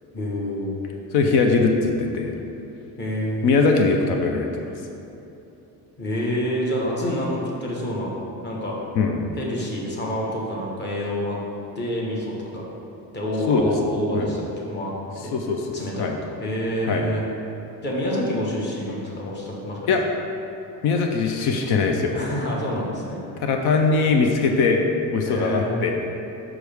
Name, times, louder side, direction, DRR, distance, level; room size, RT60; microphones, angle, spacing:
voice 1, 0.1-0.7 3.0-3.5 6.0-8.1 8.4-8.8 9.3-11.4 11.8-12.7 13.1-14.9 15.2-15.3 15.7-16.1 16.4-17.2 17.8-19.8 22.1-23.2 25.2-25.8, equal, 30° left, -3 dB, 1.1 m, -27 dB
voice 2, 1.1-2.3 3.4-4.6 9.0-9.2 13.5-13.7 14.1-14.3 15.3-16.2 16.9-17.1 19.9-20.0 20.8-22.1 23.4-24.8 25.1-25.9, left 4 dB, 85° left, 3 dB, 0.7 m, -21 dB
6.2 x 6.0 x 3.4 m, 2.9 s
cardioid pair, 160°, 38 cm